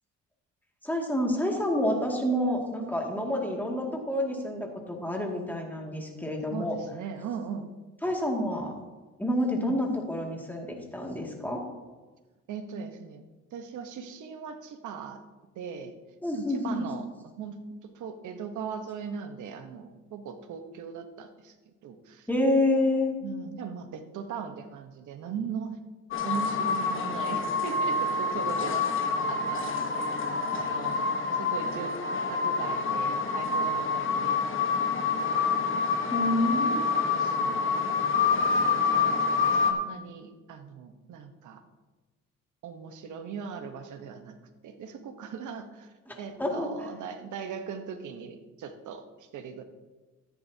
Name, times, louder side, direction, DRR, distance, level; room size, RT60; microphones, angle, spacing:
voice 1, 0.8-6.8 8.0-8.7 9.2-11.6 16.2-16.8 22.3-23.2 36.1-36.9 46.1-46.7, left 1 dB, 5° left, 0 dB, 2.3 m, -28 dB
voice 2, 6.5-7.7 9.6-9.8 12.5-13.2 13.5-15.2 15.5-15.9 16.3-17.6 17.8-21.6 21.8-22.3 23.2-25.8 26.2-31.0 31.3-32.0 32.3-34.7 35.1-35.8 36.4-36.6 37.0-37.6 38.2-41.6 42.6-44.4 44.6-49.6, right 6 dB, 75° right, 7 dB, 1.2 m, -39 dB
sound 1, 26.1-39.7, left 4 dB, 40° left, 1.2 m, -27 dB
13.5 x 10.5 x 2.8 m, 1.2 s
cardioid pair, 90°, 30 cm